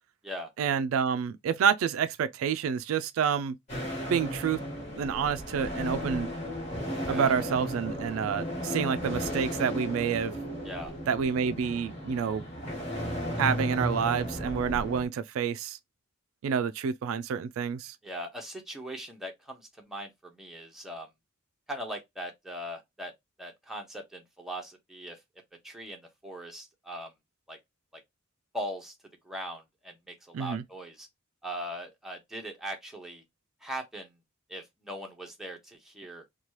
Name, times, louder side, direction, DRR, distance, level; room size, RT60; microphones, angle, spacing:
voice 1, 0.6-3.6 4.1-4.6 4.9-6.3 7.1-10.3 11.1-12.4 13.4-15.8 16.4-18.0 30.3-30.6, right 7 dB, 75° right, 0.3 m, -28 dB
sound 1, 3.7-15.0, equal, 35° left, 1.4 m, -35 dB
voice 2, 10.6-10.9 18.0-21.1 21.7-23.1 23.4-25.2 25.6-27.1 27.5-27.6 27.9-28.0 28.5-28.9 29.2-31.1 31.4-33.2 33.6-34.1 34.5-36.2, equal, ahead, 0.8 m, -40 dB
2.9 x 2.3 x 3.0 m
head